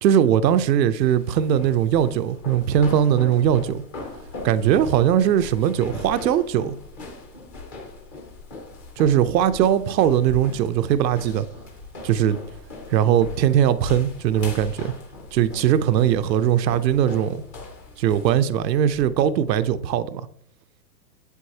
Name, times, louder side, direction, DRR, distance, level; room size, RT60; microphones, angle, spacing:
voice 1, 0.0-3.8 4.4-6.8 9.0-11.5 12.0-12.4 12.9-14.9 15.3-17.4 18.0-20.2, right 10 dB, 85° right, 0.7 m, -20 dB
sound 1, 0.6-19.8, left 2 dB, 15° left, 0.4 m, -39 dB
8.2 x 7.7 x 2.8 m
hypercardioid pair, 140°, 49 cm